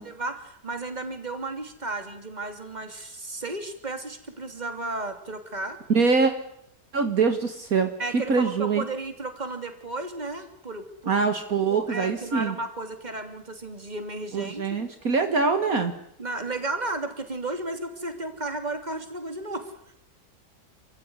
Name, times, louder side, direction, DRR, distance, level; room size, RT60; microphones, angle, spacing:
voice 1, 0.0-5.8 8.0-11.1 11.7-14.8 16.2-19.9, right 2 dB, 25° right, 7 dB, 3.1 m, -34 dB
voice 2, 5.9-6.3 6.9-7.9 8.3-8.8 11.1-12.6 14.3-15.9, right 4 dB, 60° right, 7 dB, 2.1 m, -23 dB
29.0 x 15.0 x 9.7 m, 0.75 s
omnidirectional pair, 1.7 m